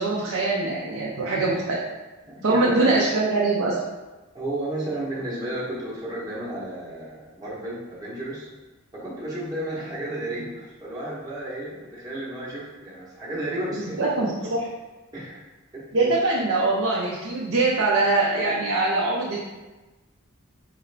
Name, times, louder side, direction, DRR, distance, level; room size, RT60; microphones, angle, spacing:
voice 1, 0.0-1.8 2.4-3.8 13.7-14.7 15.9-19.5, right 2 dB, 65° right, -4 dB, 0.5 m, -23 dB
voice 2, 2.2-3.0 4.3-8.5 8.9-14.5 15.1-15.4 15.7-16.2, right 1 dB, 15° right, -9 dB, 0.8 m, -32 dB
4.7 x 2.4 x 3.2 m, 1.1 s
head